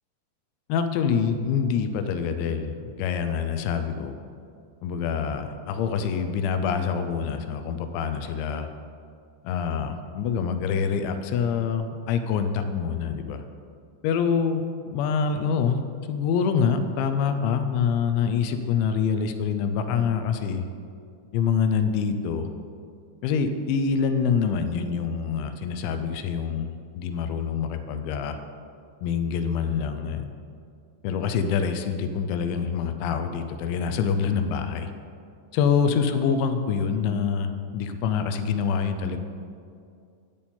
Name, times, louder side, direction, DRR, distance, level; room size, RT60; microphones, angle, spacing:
voice 1, 0.7-4.2 4.8-8.7 9.4-13.4 14.0-14.6 14.9-20.7 21.3-22.6 23.2-28.4 29.0-30.4 31.0-34.9 35.5-39.2, left 6 dB, 85° left, 8 dB, 2.8 m, -26 dB
9.1 x 8.7 x 4.3 m, 2.3 s
omnidirectional pair, 5.5 m